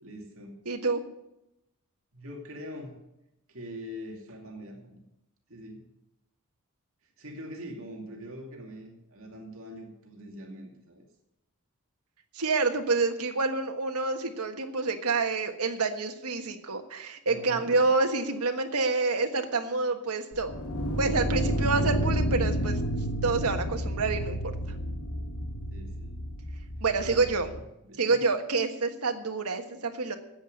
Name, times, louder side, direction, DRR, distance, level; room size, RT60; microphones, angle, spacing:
voice 1, 0.0-0.6 2.1-3.0 3.5-5.0 5.5-5.8 7.2-11.0 17.2-17.9 25.7-26.2 27.0-27.3 27.8-28.2, equal, 65° right, 1 dB, 2.6 m, -43 dB
voice 2, 0.6-1.0 12.3-20.6 21.0-22.8 23.2-24.5 26.8-27.5 28.0-30.2, right 3 dB, 85° right, 5 dB, 1.5 m, -28 dB
sound 1, 20.3-27.6, equal, 80° left, 1.4 m, -30 dB
10.5 x 8.3 x 9.4 m, 0.87 s
head